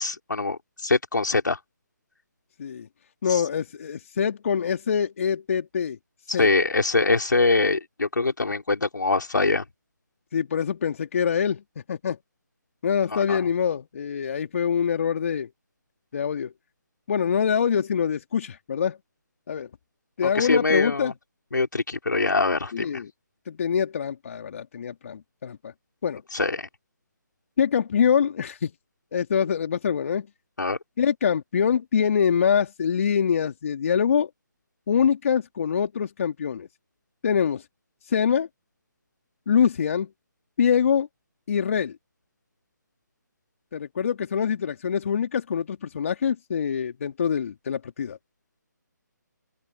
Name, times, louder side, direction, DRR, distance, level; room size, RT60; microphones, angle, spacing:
voice 1, 0.0-1.6 3.3-3.4 6.4-9.6 13.1-13.4 20.2-21.1 21.5-23.0 26.3-26.7 30.6-30.8, left 3 dB, 75° left, 5.0 m, -23 dB
voice 2, 3.2-6.0 6.3-6.5 10.3-11.6 11.9-12.2 12.8-15.5 16.1-16.5 17.1-19.0 19.5-19.7 20.2-21.1 22.7-23.1 23.5-25.7 26.0-26.2 27.6-28.7 29.1-30.3 31.0-34.3 34.9-36.7 37.2-37.6 38.0-38.5 39.5-40.1 40.6-41.1 41.5-42.0 43.7-48.2, left 7 dB, 45° left, 2.5 m, -24 dB
open air
figure-of-eight pair, 150°, 10 cm